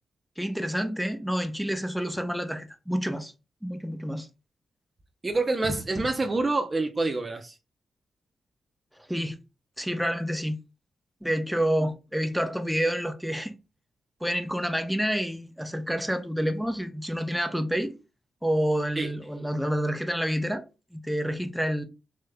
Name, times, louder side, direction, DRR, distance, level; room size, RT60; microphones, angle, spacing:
voice 1, 0.4-3.3 3.6-4.3 9.1-9.4 9.8-10.6 11.2-13.5 14.2-17.9 18.4-20.6 20.9-21.8, equal, ahead, 0.9 m, -28 dB
voice 2, 5.2-7.6 19.0-19.1, right 2 dB, 35° right, 0.7 m, -27 dB
5.0 x 3.2 x 2.3 m
supercardioid pair, 50°, 0 cm